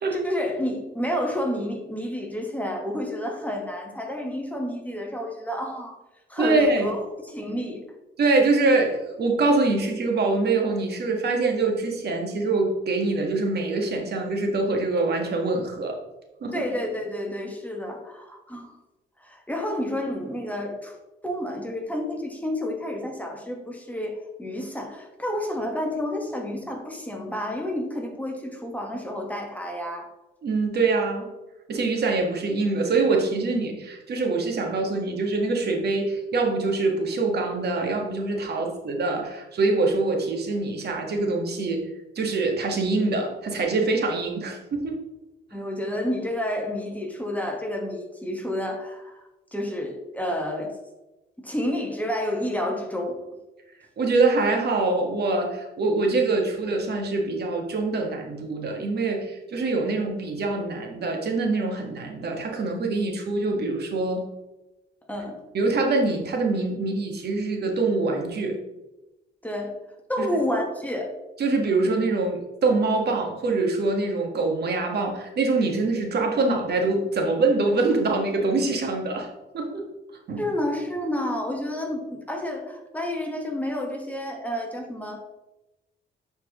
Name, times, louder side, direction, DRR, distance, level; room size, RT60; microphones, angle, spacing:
voice 1, 0.1-6.0 6.3-7.8 16.5-18.7 19.2-21.0 21.2-30.1 38.6-38.7 45.5-49.2 49.5-50.8 51.4-53.2 65.1-65.4 69.4-69.7 70.1-71.2 80.4-85.2, left 1 dB, 5° left, 1 dB, 1.3 m, -30 dB
voice 2, 6.4-6.9 8.2-16.0 16.4-16.6 30.4-31.3 31.7-41.9 42.1-45.0 54.0-64.2 65.5-68.6 70.2-70.3 71.4-79.3 79.5-79.8 80.3-80.4, right 3 dB, 55° right, 2 dB, 1.4 m, -24 dB
10.0 x 4.5 x 3.0 m, 1.0 s
cardioid pair, 90°, 20 cm